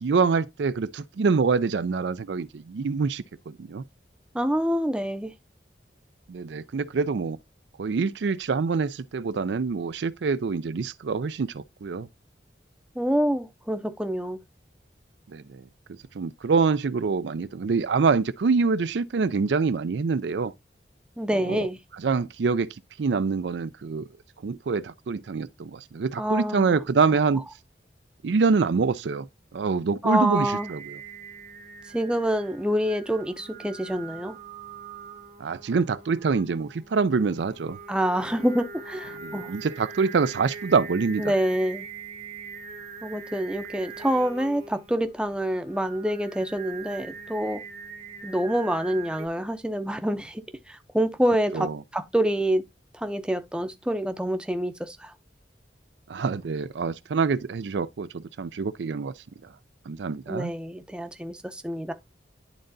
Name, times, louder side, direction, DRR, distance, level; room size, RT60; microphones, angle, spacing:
voice 1, 0.0-3.8 6.3-7.4 7.8-12.1 15.3-20.5 21.3-21.6 22.0-24.1 24.4-27.4 28.2-29.3 29.5-31.0 35.4-37.8 39.2-41.3 51.5-51.8 56.1-59.1 59.9-60.5, right 4 dB, 80° right, 0.4 m, -25 dB
voice 2, 4.3-5.3 13.0-14.4 21.2-21.8 26.2-26.8 30.0-30.7 31.9-34.4 37.9-39.5 41.2-41.9 43.0-47.6 48.2-52.6 52.9-55.1 60.3-61.9, equal, 5° right, 0.6 m, -27 dB
Singing, 30.3-49.3, right 5 dB, 35° right, 0.8 m, -42 dB
11.0 x 3.8 x 2.6 m
head